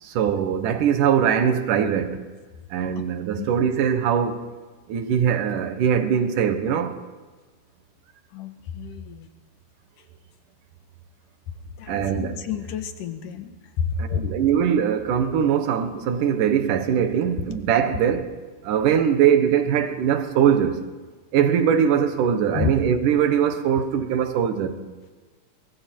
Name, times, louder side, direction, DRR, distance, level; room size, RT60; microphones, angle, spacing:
voice 1, 0.0-2.2 2.7-4.5 4.9-7.0 11.9-12.4 14.0-18.3 18.6-20.8 21.3-24.7, right 8 dB, 80° right, 3.0 m, -21 dB
voice 2, 8.3-9.3 11.8-14.2 22.5-22.7, left 7 dB, 90° left, 3.1 m, -30 dB
26.0 x 23.0 x 4.6 m
omnidirectional pair, 3.6 m